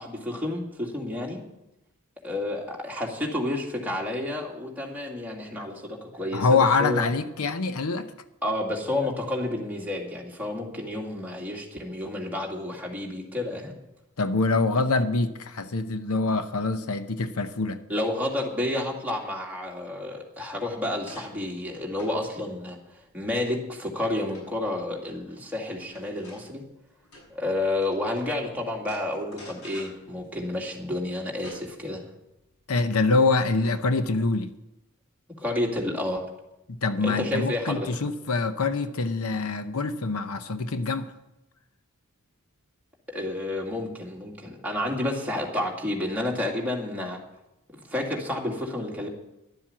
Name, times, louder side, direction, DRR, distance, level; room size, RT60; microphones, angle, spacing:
voice 1, 0.0-1.4 2.2-7.1 8.4-13.7 17.9-22.8 23.1-26.6 27.3-32.1 35.4-36.3 37.0-37.9 43.1-47.2 47.9-49.1, left 1 dB, 5° right, 2.2 m, -30 dB
voice 2, 6.3-8.1 14.2-17.8 32.7-34.5 36.7-41.1, left 3 dB, 75° left, 0.8 m, -25 dB
sound 1, 20.4-28.4 28.8-34.0, left 1 dB, 90° left, 6.4 m, -50 dB
12.0 x 7.5 x 8.6 m
head